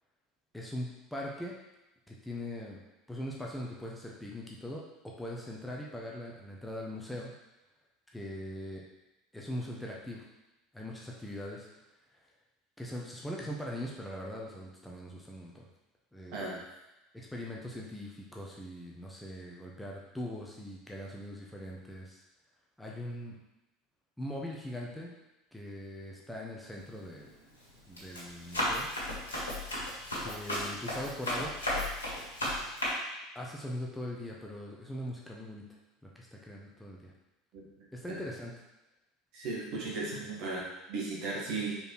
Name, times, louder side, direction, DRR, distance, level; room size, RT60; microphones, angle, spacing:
voice 1, 0.5-1.5 2.1-2.8 3.1-7.3 8.1-8.8 9.3-10.2 10.7-11.7 12.8-15.7 16.1-16.6 17.1-22.2 22.8-23.4 24.2-25.1 25.5-27.3 27.9-28.9 30.2-31.5 33.3-35.6 36.1-37.1 37.9-38.5, left 1 dB, 5° left, -3 dB, 1.1 m, -41 dB
Run, 26.8-27.1 27.6-32.9, left 1 dB, 80° left, 1.8 m, -34 dB
voice 2, 39.3-41.7, right 3 dB, 50° right, -4 dB, 1.9 m, -36 dB
5.4 x 4.2 x 4.6 m, 0.98 s
figure-of-eight pair, 70°, 0 cm